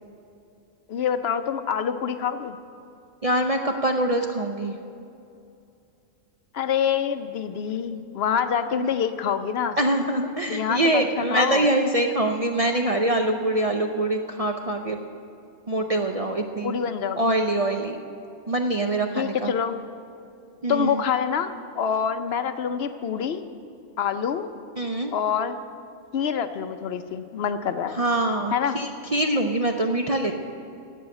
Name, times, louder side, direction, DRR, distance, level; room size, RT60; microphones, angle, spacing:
voice 1, 0.9-2.6 6.5-9.8 10.5-11.0 11.3-11.6 16.6-17.3 19.1-19.8 20.7-21.5 21.8-23.4 24.0-24.5 25.1-25.6 26.1-28.0 28.5-28.8, left 7 dB, 60° left, 10 dB, 0.8 m, -26 dB
voice 2, 3.2-4.7 8.7-8.9 9.8-15.0 15.7-16.8 17.2-18.0 18.5-19.5 20.6-21.0 24.8-25.1 27.9-30.3, right 1 dB, 45° right, 3 dB, 0.5 m, -24 dB
15.0 x 5.6 x 9.7 m, 2.7 s
omnidirectional pair, 1.4 m